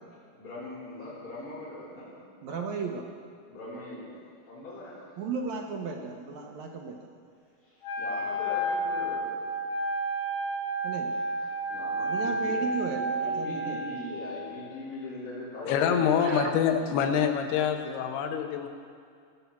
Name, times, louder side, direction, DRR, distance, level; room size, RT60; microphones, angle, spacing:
voice 1, 0.3-2.1 3.5-5.0 7.6-9.6 11.7-12.8 13.2-16.4, left 1 dB, 65° left, -13 dB, 6.0 m, -41 dB
voice 2, 2.4-3.1 5.2-7.1 10.8-11.1 12.0-13.8 16.2-16.6, right 5 dB, 75° right, 1 dB, 1.7 m, -35 dB
Wind instrument woodwind instrument, 7.8-14.0, right 1 dB, 25° left, 4.7 m, -31 dB
voice 3, 15.6-18.7, left 8 dB, 90° left, 6 dB, 3.0 m, -26 dB
19.5 x 7.0 x 8.5 m, 2.2 s
omnidirectional pair, 4.5 m